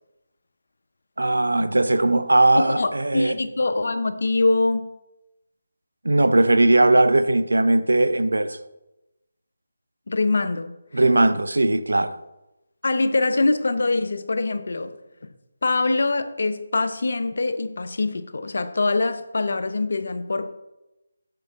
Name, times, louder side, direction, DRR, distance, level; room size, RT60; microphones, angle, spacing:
voice 1, 1.2-3.4 6.0-8.6 10.9-12.2, right 2 dB, 90° right, 0.5 m, -19 dB
voice 2, 2.6-4.9 10.1-10.7 12.8-14.9 15.6-20.5, left 3 dB, 65° left, 0.6 m, -23 dB
6.7 x 6.2 x 3.5 m
figure-of-eight pair, 165°, 0 cm